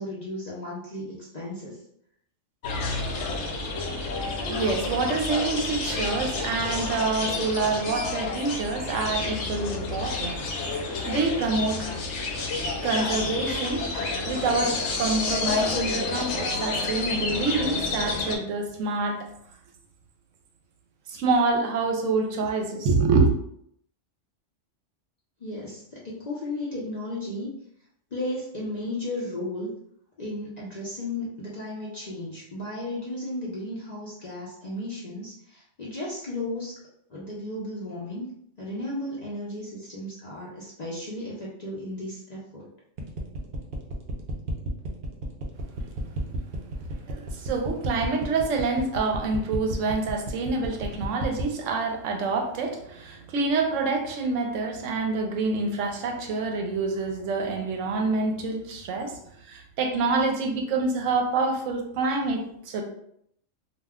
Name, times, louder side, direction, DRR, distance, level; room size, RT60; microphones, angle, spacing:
voice 1, 0.0-1.8 25.4-27.5 28.1-29.7 30.2-36.7 37.1-38.3 38.6-42.7, left 1 dB, 50° left, 0.5 m, -34 dB
sound 1, 2.6-18.4, left 3 dB, 70° left, 0.9 m, -29 dB
voice 2, 4.4-10.3 10.6-11.9 12.8-19.3 21.1-23.3 47.1-59.2 59.5-62.8, right 3 dB, 80° right, 0.9 m, -27 dB
sound 2, 43.0-51.5, right 1 dB, 60° right, 0.6 m, -33 dB
2.4 x 2.1 x 3.5 m
omnidirectional pair, 1.3 m